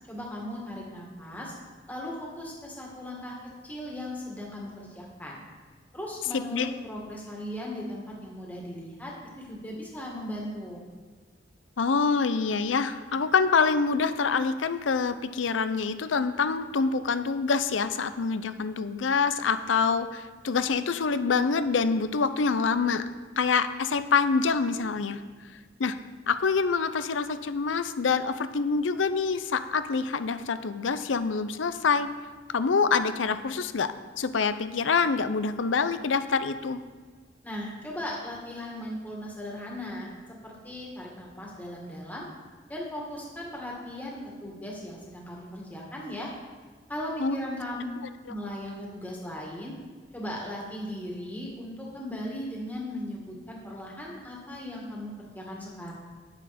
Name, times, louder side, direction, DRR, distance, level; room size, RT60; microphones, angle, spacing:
voice 1, 0.1-1.5 1.9-3.3 3.6-5.4 5.9-10.8 37.4-40.1 40.4-42.3 42.7-46.3 46.9-47.9 48.3-49.7 50.1-55.9, left 1 dB, 10° left, -3 dB, 2.0 m, -37 dB
voice 2, 6.3-6.7 11.8-23.1 23.4-25.2 25.8-26.0 26.3-32.1 32.5-36.8 47.2-47.4, left 5 dB, 90° left, 11 dB, 0.6 m, -26 dB
9.7 x 8.9 x 4.2 m, 1.5 s
head